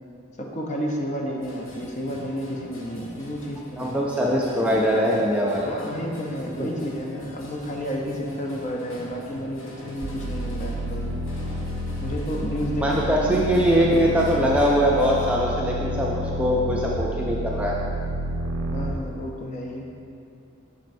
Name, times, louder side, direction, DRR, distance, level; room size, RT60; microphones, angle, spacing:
voice 1, 0.4-4.0 5.6-11.2 12.0-14.6 18.7-19.9, equal, 35° left, 0 dB, 0.6 m, -31 dB
sound 1, 1.4-15.3, equal, 60° left, 1.0 m, -44 dB
voice 2, 3.8-5.7 6.6-6.7 12.8-17.8, equal, 5° right, -4 dB, 0.3 m, -22 dB
sound 2, 10.0-18.9, equal, 80° right, 0.5 m, -30 dB
7.3 x 6.1 x 2.6 m, 2.6 s
head